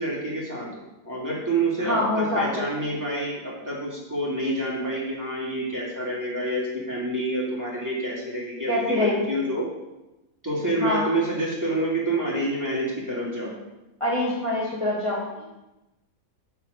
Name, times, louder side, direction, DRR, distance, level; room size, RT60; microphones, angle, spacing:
voice 1, 0.0-9.6 10.4-13.5, right 1 dB, 10° right, -6 dB, 2.6 m, -28 dB
voice 2, 1.8-2.7 8.7-9.3 10.8-11.1 14.0-15.4, left 1 dB, 20° left, -6 dB, 1.5 m, -25 dB
9.1 x 4.6 x 6.4 m, 1.0 s
omnidirectional pair, 1.6 m